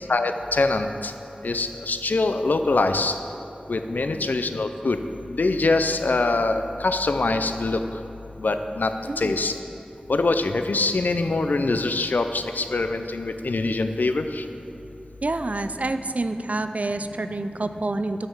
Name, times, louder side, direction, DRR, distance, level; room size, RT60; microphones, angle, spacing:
voice 1, 0.1-1.1 1.4-3.1 3.7-5.0 5.3-7.8 8.4-9.5 10.1-14.4, left 3 dB, 80° left, 8 dB, 0.4 m, -24 dB
voice 2, 4.0-4.3 9.1-9.4 15.2-18.3, right 2 dB, 55° right, 9 dB, 0.4 m, -28 dB
6.5 x 6.3 x 6.1 m, 2.9 s
wide cardioid pair, 45°, 3 cm